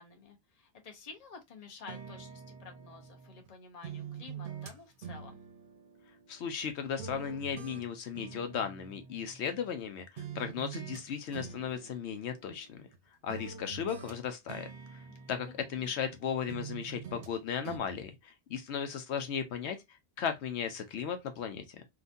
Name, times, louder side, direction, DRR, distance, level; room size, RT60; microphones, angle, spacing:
voice 1, 0.0-5.4 15.1-15.9, left 5 dB, 40° left, 0.8 m, -51 dB
sound 1, 1.9-3.5 3.8-6.7 7.0-9.9 10.2-11.0 11.3-13.0 13.3-16.2 16.5-17.4 17.6-17.8, right 6 dB, 55° right, 0.7 m, -46 dB
voice 2, 6.3-12.8 13.2-15.0 15.3-21.6, left 7 dB, 75° left, 0.9 m, -36 dB
3.8 x 2.5 x 2.5 m
omnidirectional pair, 1.2 m